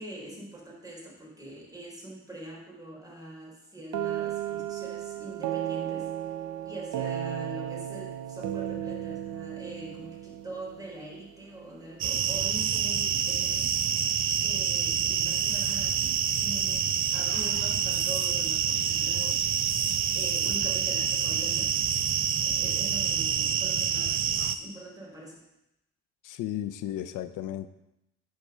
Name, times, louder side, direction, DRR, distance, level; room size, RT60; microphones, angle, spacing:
voice 1, 0.0-6.4 6.6-13.8 14.4-19.5 20.1-21.8 22.4-25.4, right 1 dB, 10° right, -3 dB, 3.9 m, -43 dB
sound 1, 3.9-11.7, right 11 dB, 80° right, 0.6 m, -35 dB
sound 2, 12.0-24.5, right 7 dB, 45° right, 0.6 m, -27 dB
voice 2, 26.2-27.7, left 12 dB, 90° left, 12 dB, 0.7 m, -34 dB
9.0 x 4.7 x 6.7 m, 0.86 s
cardioid pair, 90°, 30 cm